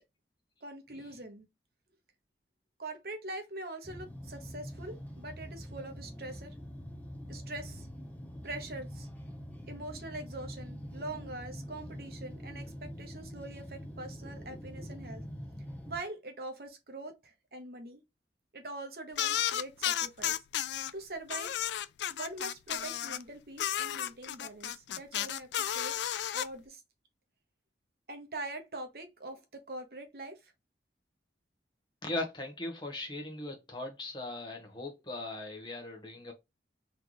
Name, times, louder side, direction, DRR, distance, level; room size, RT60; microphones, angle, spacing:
voice 1, 0.6-1.5 2.8-6.5 7.3-7.9 8.4-9.1 9.7-15.2 15.9-18.0 18.5-20.4 20.9-21.5 22.1-25.9 26.3-26.8 28.1-30.5, right 2 dB, 55° right, 1.0 m, -43 dB
sound 1, 3.8-16.0, equal, 10° left, 0.8 m, -44 dB
sound 2, 19.2-20.9 21.3-23.2 23.6-26.5, left 11 dB, 80° left, 0.3 m, -33 dB
voice 2, 32.0-36.3, left 2 dB, 25° left, 1.1 m, -39 dB
3.8 x 3.3 x 3.0 m
head